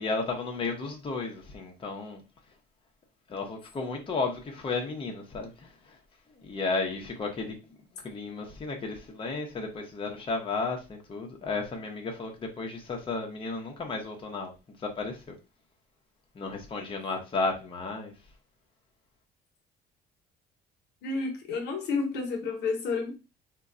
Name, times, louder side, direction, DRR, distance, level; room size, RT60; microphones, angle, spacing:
voice 1, 0.0-2.2 3.3-6.0 6.4-7.6 8.0-14.5 14.8-15.4 16.3-18.1, left 3 dB, 30° left, 0.8 m, -33 dB
voice 2, 21.0-23.1, left 4 dB, 75° left, 0.8 m, -30 dB
2.2 x 2.2 x 3.7 m
cardioid pair, 110°, 17 cm